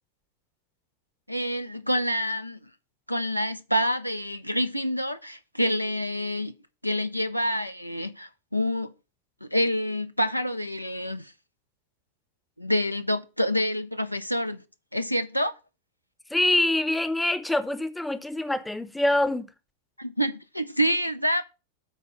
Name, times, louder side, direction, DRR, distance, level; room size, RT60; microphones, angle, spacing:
voice 1, 1.3-2.6 3.1-6.5 6.8-8.9 9.4-11.3 12.6-14.6 14.9-15.5 20.0-21.5, equal, 90° left, 0.6 m, -27 dB
voice 2, 16.3-19.5, left 1 dB, 5° left, 0.7 m, -25 dB
8.5 x 4.3 x 6.3 m
figure-of-eight pair, 90°, 0 cm